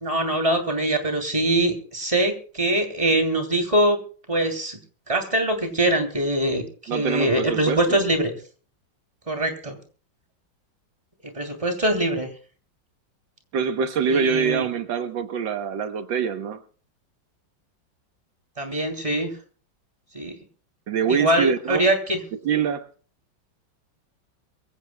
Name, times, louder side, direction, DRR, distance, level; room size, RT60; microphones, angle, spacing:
voice 1, 0.0-4.0 4.3-4.8 5.1-8.3 9.3-9.8 11.3-12.3 14.1-14.6 18.6-19.3 20.1-20.3 21.1-22.2, right 1 dB, 15° right, 6 dB, 2.9 m, -23 dB
voice 2, 6.9-8.0 13.5-16.6 20.9-21.9 22.4-22.9, right 6 dB, 80° right, 9 dB, 1.8 m, -24 dB
23.5 x 16.0 x 2.2 m, 0.40 s
omnidirectional pair, 2.0 m